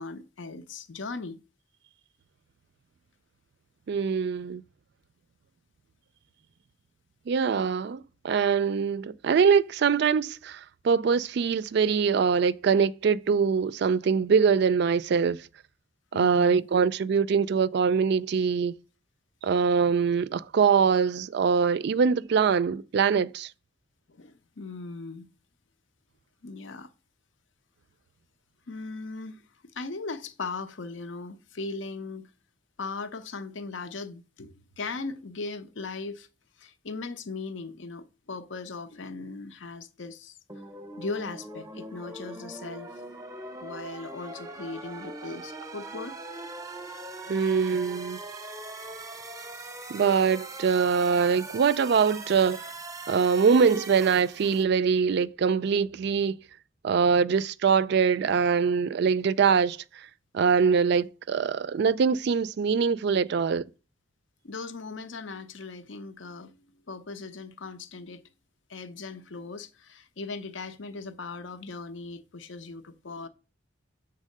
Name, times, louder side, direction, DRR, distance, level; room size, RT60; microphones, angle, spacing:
voice 1, 0.0-1.4 16.1-16.6 24.1-25.3 26.4-26.9 28.7-29.4 29.7-32.3 32.8-36.3 36.6-40.4 41.0-42.9 43.6-46.2 64.4-66.5 66.9-68.2 68.7-73.3, left 3 dB, 75° left, 0.7 m, -38 dB
voice 2, 3.9-4.6 7.3-15.5 16.1-18.8 19.4-23.5 47.3-48.2 49.9-52.7 53.1-56.4 56.8-59.8 60.3-63.6, right 6 dB, 60° right, 0.3 m, -23 dB
sound 1, 40.5-54.6, right 2 dB, 15° right, 0.8 m, -41 dB
7.3 x 4.1 x 6.4 m
head